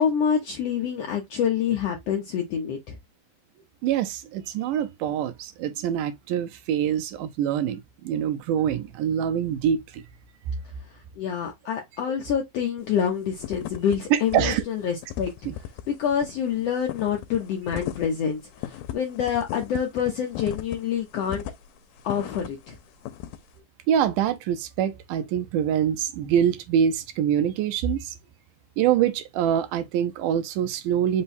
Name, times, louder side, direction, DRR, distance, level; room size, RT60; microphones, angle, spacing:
voice 1, 0.0-3.0 10.9-15.3 15.9-21.4 22.0-22.8, left 8 dB, 75° left, 1.5 m, -27 dB
voice 2, 3.8-10.0 14.1-14.6 15.5-15.6 23.9-28.2 28.8-31.2, right 9 dB, 80° right, 2.1 m, -25 dB
sound 1, 12.8-13.0 13.3-14.0 14.2-14.5 14.8-22.7 23.0-23.4, left 12 dB, 90° left, 2.2 m, -36 dB
5.4 x 2.2 x 4.0 m
omnidirectional pair, 3.8 m